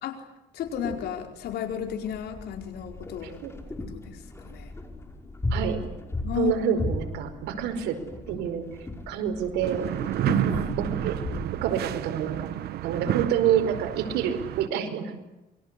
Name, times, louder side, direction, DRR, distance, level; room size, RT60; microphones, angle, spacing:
voice 1, 0.5-3.4 3.8-4.7 6.2-6.8 10.3-10.8 13.1-13.2, left 9 dB, 70° left, 5 dB, 4.7 m, -33 dB
sound 1, 0.6-11.5, left 1 dB, 15° left, 5.7 m, -36 dB
voice 2, 5.5-5.8 6.3-8.0 8.3-8.7 9.1-9.9 10.8-11.2 11.6-12.5 12.8-15.1, right 9 dB, 85° right, 6 dB, 5.0 m, -27 dB
sound 2, 9.6-14.7, right 12 dB, 70° right, 1.1 m, -30 dB
28.0 x 23.5 x 8.3 m, 1.0 s
cardioid pair, 110°, 17 cm